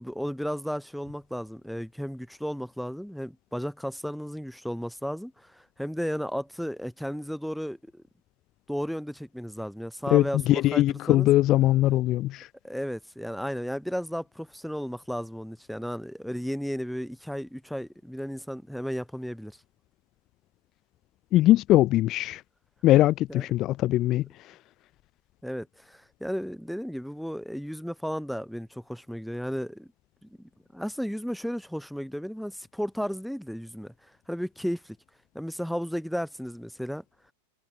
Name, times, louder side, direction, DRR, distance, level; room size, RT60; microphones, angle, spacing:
voice 1, 0.0-8.0 8.7-11.3 12.6-19.6 23.3-23.5 25.4-29.9 30.2-33.9 34.3-35.0 35.3-37.0, equal, ahead, 2.6 m, -34 dB
voice 2, 10.1-12.5 21.3-22.4 22.8-24.5, left 15 dB, 35° left, 0.5 m, -21 dB
figure-of-eight pair, 90°, 0 cm